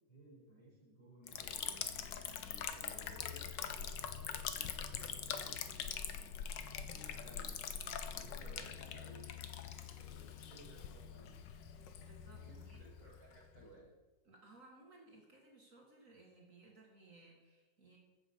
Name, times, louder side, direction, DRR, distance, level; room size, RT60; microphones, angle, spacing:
voice 1, 0.1-1.9 2.3-7.6 8.1-11.6 12.3-13.9, right 1 dB, 20° left, -12 dB, 5.5 m, -60 dB
Liquid, 1.3-13.7, left 8 dB, 85° left, 1.5 m, -44 dB
voice 2, 12.0-12.8 14.3-18.0, right 2 dB, 45° right, -1 dB, 2.3 m, -61 dB
14.5 x 7.9 x 5.4 m, 1.1 s
omnidirectional pair, 1.9 m